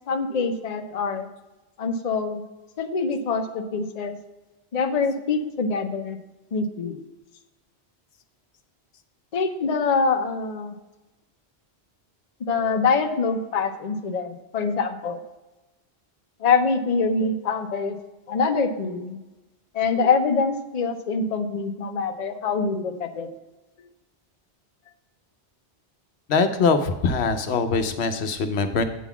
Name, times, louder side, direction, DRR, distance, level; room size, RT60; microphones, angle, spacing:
voice 1, 0.1-1.3 1.8-2.4 2.8-4.2 4.7-6.2 6.5-7.0 9.3-10.7 12.4-15.2 16.4-18.0 18.3-19.2 19.7-23.3, left 4 dB, 45° left, 5 dB, 0.7 m, -24 dB
voice 2, 26.3-28.8, left 4 dB, 75° left, 8 dB, 1.0 m, -22 dB
8.3 x 3.9 x 7.0 m, 1.1 s
omnidirectional pair, 1.1 m